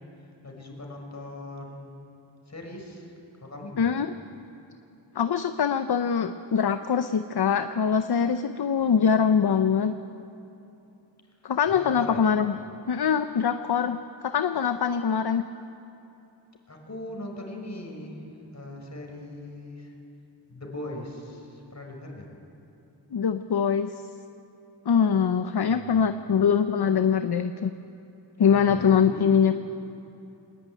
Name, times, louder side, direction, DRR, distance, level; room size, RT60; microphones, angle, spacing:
voice 1, 0.4-2.0 2.5-3.1 3.4-3.9 8.8-9.5 11.7-12.2 16.7-18.2 18.5-19.9 20.5-22.3 25.7-26.0 28.5-29.3, left 1 dB, 35° left, 1 dB, 5.3 m, -40 dB
voice 2, 3.8-4.1 5.1-9.9 11.4-12.5 12.9-14.0 14.2-15.4 23.1-23.9 24.9-27.7 28.4-29.5, left 7 dB, 60° left, 9 dB, 0.8 m, -23 dB
22.0 x 20.5 x 9.2 m, 2.9 s
wide cardioid pair, 105°, 45 cm